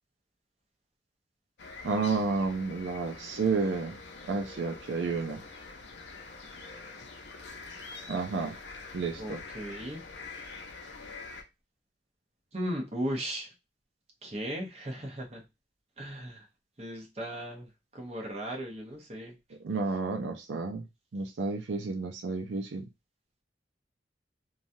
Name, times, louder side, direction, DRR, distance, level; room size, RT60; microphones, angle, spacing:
sound 1, 1.6-11.4, left 3 dB, 80° left, 0.7 m, -45 dB
voice 1, 1.8-3.9 4.3-5.4 8.1-8.5 8.9-9.4 19.6-20.8 21.1-22.8, right 4 dB, 90° right, 0.5 m, -31 dB
voice 2, 9.2-10.0 12.5-13.5 14.2-15.4 16.0-16.5 16.8-17.7 17.9-19.4, equal, 35° right, 0.9 m, -36 dB
3.1 x 2.3 x 2.6 m
head